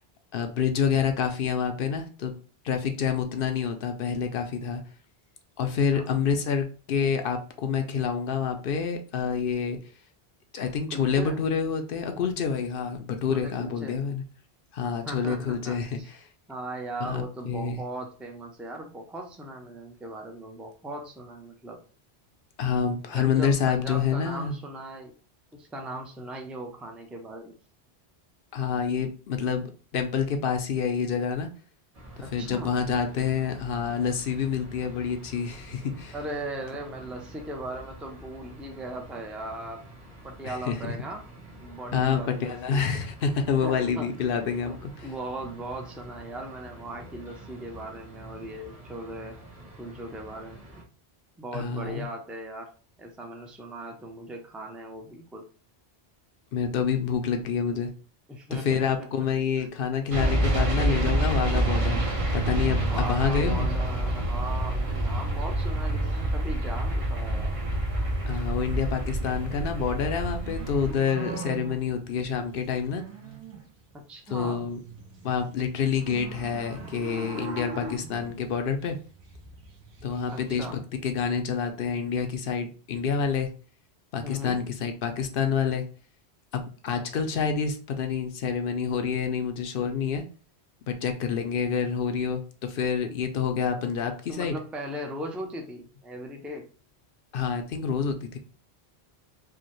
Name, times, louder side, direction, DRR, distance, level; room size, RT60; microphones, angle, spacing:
voice 1, 0.3-2.4 2.6-4.8 5.6-9.8 10.5-14.2 14.7-16.0 17.0-17.8 22.6-24.5 28.5-31.5 32.3-36.1 40.4-41.0 41.9-44.9 51.5-52.1 56.5-57.9 58.5-63.7 68.3-73.0 74.3-74.8 75.2-79.0 80.0-83.5 84.1-85.8 86.5-90.2 90.9-94.6 97.3-98.4, left 6 dB, 65° left, 6 dB, 0.7 m, -28 dB
voice 2, 5.6-6.1 10.9-11.4 13.3-14.0 14.8-16.1 16.5-21.8 23.1-25.1 25.5-27.5 32.2-32.7 36.1-39.9 40.2-41.3 41.6-42.9 43.6-44.1 44.6-49.4 49.8-50.8 51.4-52.7 53.0-55.4 58.3-59.1 59.6-59.7 62.8-67.5 73.9-74.7 80.3-80.8 84.2-84.7 94.3-96.7, right 1 dB, ahead, 2 dB, 0.4 m, -38 dB
sound 1, 31.9-50.8, equal, 60° right, 1.5 m, -47 dB
sound 2, 60.1-70.9, right 1 dB, 35° right, 0.7 m, -27 dB
sound 3, 69.2-73.9 74.3-80.7, right 3 dB, 80° right, 1.1 m, -42 dB
4.7 x 2.1 x 3.0 m, 0.37 s
omnidirectional pair, 1.1 m